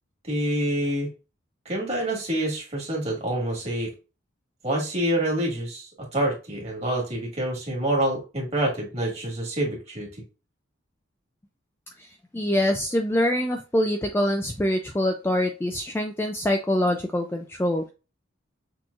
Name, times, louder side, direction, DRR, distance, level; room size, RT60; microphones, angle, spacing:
voice 1, 0.2-1.1 1.7-3.9 4.6-5.9 6.1-10.1, right 1 dB, 30° right, -2 dB, 1.9 m, -27 dB
voice 2, 12.3-17.9, left 1 dB, 10° left, 4 dB, 0.3 m, -24 dB
6.1 x 3.0 x 2.4 m, 0.30 s
head